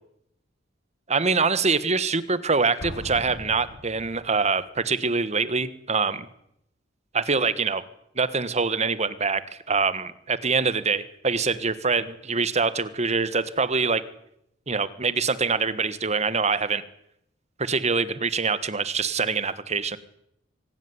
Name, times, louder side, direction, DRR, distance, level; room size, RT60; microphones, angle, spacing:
voice 1, 1.1-6.3 7.1-7.8 8.1-9.4 9.7-14.0 14.7-16.8 17.6-20.0, right 4 dB, 35° right, 14 dB, 1.5 m, -24 dB
Explosion, 2.8-4.4, left 1 dB, 75° left, 4.7 m, -39 dB
24.5 x 17.0 x 9.8 m, 0.77 s
head